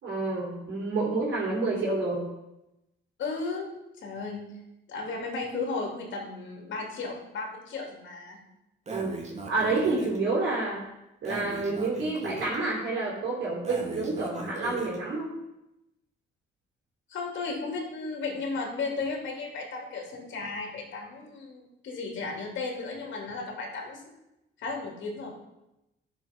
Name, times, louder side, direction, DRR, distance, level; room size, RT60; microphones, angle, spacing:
voice 1, 0.0-2.3 8.9-9.2 9.5-10.9 11.2-15.3, right 3 dB, 70° right, -4 dB, 4.0 m, -29 dB
voice 2, 3.2-3.7 4.0-4.5 4.9-8.4 17.1-24.0 24.6-25.3, left 3 dB, 70° left, 0 dB, 3.2 m, -34 dB
Breathing, 8.9-10.2 11.2-12.6 13.6-15.0, right 2 dB, 35° right, 1.9 m, -38 dB
10.5 x 7.2 x 5.4 m, 0.92 s
cardioid pair, 90°, 20 cm